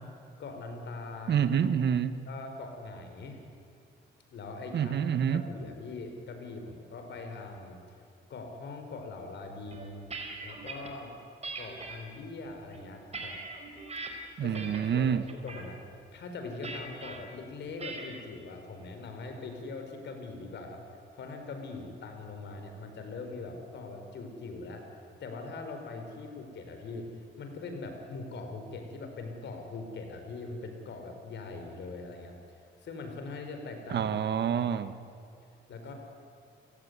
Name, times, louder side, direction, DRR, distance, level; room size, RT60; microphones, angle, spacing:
voice 1, 0.4-1.4 2.3-3.4 4.3-7.8 8.3-10.1 10.4-11.1 11.6-13.4 14.4-15.8 16.1-20.8 21.1-24.8 25.2-27.1 27.4-32.4 32.8-34.1 35.7-35.9, left 3 dB, 65° left, 5 dB, 5.1 m, -42 dB
voice 2, 1.3-2.2 4.7-5.4 14.4-15.2 33.9-35.0, right 8 dB, 60° right, 12 dB, 1.4 m, -27 dB
sound 1, 9.7-10.9 11.4-12.0 12.6-14.1 14.5-14.9 15.3-15.7 16.6-17.2 17.8-18.2, right 3 dB, 35° right, 4.6 m, -41 dB
30.0 x 17.5 x 9.7 m, 2.5 s
cardioid pair, 90°, 20 cm